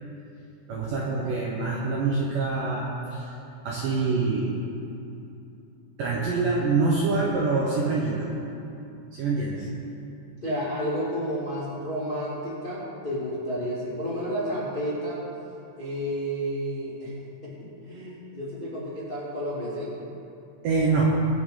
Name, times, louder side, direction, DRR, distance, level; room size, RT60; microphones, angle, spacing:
voice 1, 0.7-3.3 3.6-4.5 6.0-8.3 9.1-9.7 20.6-21.1, right 4 dB, 75° right, -4 dB, 2.1 m, -25 dB
voice 2, 10.4-15.2 15.8-17.1 17.4-19.9, equal, 35° left, -8 dB, 0.8 m, -31 dB
22.5 x 7.6 x 3.8 m, 2.8 s
omnidirectional pair, 5.3 m